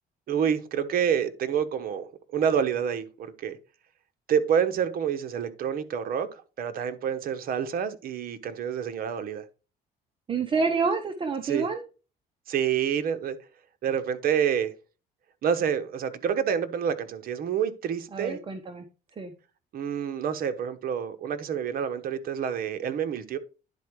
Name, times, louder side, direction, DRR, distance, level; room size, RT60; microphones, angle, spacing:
voice 1, 0.3-3.6 4.3-9.4 11.4-11.7 12.5-13.4 13.8-14.7 15.4-18.4 19.7-23.4, right 8 dB, 60° right, 1.2 m, -28 dB
voice 2, 10.3-11.8 18.1-18.8 19.2-19.3, right 5 dB, 30° right, 1.1 m, -28 dB
10.5 x 4.5 x 4.7 m
cardioid pair, 110°, 17 cm